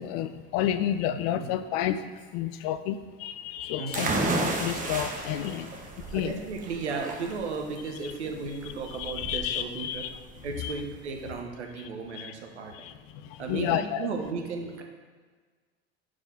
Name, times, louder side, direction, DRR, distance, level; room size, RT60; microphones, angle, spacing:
voice 1, 0.0-2.0 2.3-5.7 6.1-6.4 9.0-10.1 10.6-10.7 12.1-12.3 12.7-12.9 13.3-14.1, left 11 dB, 60° left, 11 dB, 0.5 m, -30 dB
voice 2, 1.1-1.5 3.8-4.1 6.1-10.0 10.4-12.9 13.4-14.8, right 4 dB, 90° right, 3 dB, 0.8 m, -35 dB
sound 1, 3.9-6.2, left 3 dB, 30° left, 1.0 m, -47 dB
sound 2, 3.9-11.4, right 2 dB, 25° right, 0.8 m, -33 dB
4.8 x 3.8 x 5.5 m, 1.5 s
hypercardioid pair, 75°, 33 cm